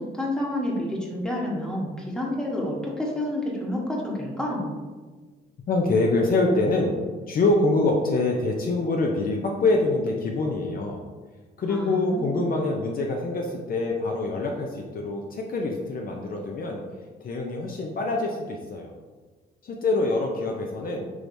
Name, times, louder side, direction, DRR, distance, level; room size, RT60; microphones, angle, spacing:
voice 1, 0.0-4.7 11.7-12.5, left 1 dB, 5° left, -3 dB, 1.0 m, -29 dB
voice 2, 5.7-7.0 7.3-11.0 11.6-16.8 17.2-18.9 19.6-21.1, left 2 dB, 45° left, 1 dB, 0.5 m, -25 dB
4.7 x 3.3 x 2.6 m, 1.4 s
cardioid pair, 90°, 20 cm